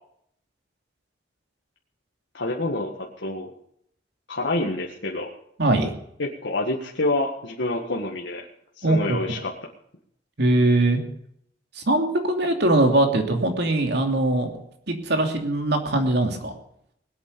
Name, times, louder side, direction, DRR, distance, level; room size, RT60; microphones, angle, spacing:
voice 1, 2.3-3.5 4.3-5.3 6.2-8.5 8.8-9.5, left 2 dB, 75° left, -1 dB, 1.8 m, -27 dB
voice 2, 5.6-5.9 8.8-9.2 10.4-11.0 11.8-14.5 14.9-16.5, right 2 dB, 65° right, 4 dB, 2.8 m, -21 dB
21.0 x 8.6 x 6.9 m, 0.70 s
head